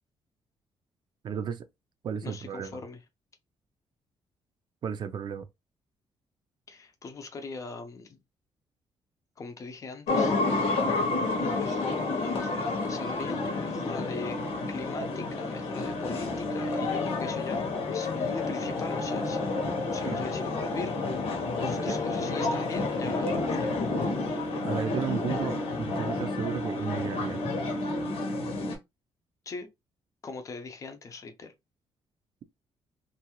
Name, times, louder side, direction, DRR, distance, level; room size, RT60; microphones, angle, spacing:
voice 1, 1.2-1.7 2.0-2.8 4.8-5.5 20.1-20.2 21.8-22.0 24.6-27.5, right 7 dB, 50° right, 0.5 m, -34 dB
voice 2, 2.2-3.0 6.7-8.2 9.4-10.3 11.5-17.6 17.9-21.0 21.6-23.7 29.5-29.7 30.2-31.5, left 3 dB, 35° left, 0.6 m, -40 dB
sound 1, 10.1-28.8, left 3 dB, 80° left, 0.9 m, -30 dB
2.6 x 2.3 x 2.9 m
cardioid pair, 125°, 10 cm